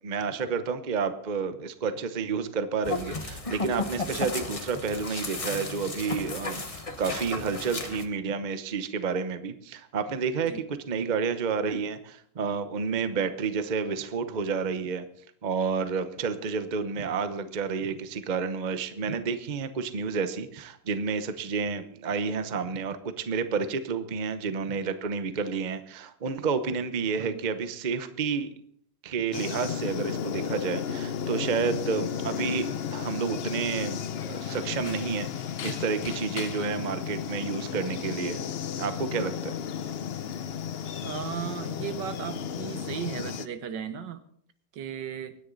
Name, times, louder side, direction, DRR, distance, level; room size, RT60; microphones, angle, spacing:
voice 1, 0.0-15.0 15.4-28.5 29.0-35.3 35.6-38.5 38.8-39.6, right 5 dB, 35° right, 10 dB, 0.8 m, -30 dB
sound 1, 2.8-8.1, left 3 dB, 25° left, 1.0 m, -34 dB
sound 2, 29.3-43.5, left 8 dB, 75° left, 0.5 m, -34 dB
voice 2, 41.0-44.2 44.7-45.4, right 8 dB, 75° right, 11 dB, 1.7 m, -36 dB
24.5 x 10.0 x 4.0 m, 0.64 s
omnidirectional pair, 2.0 m